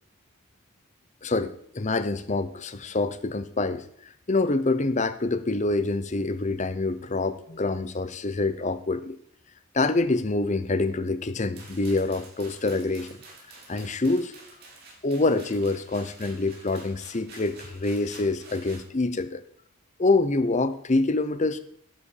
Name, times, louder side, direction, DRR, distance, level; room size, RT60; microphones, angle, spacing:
voice 1, 1.2-3.8 4.3-9.2 9.7-13.2 13.7-14.3 15.0-19.4 20.0-21.6, left 2 dB, 30° left, 12 dB, 0.7 m, -26 dB
sound 1, 11.6-18.9, right 3 dB, 45° right, 4.2 m, -49 dB
11.5 x 5.1 x 8.5 m, 0.66 s
head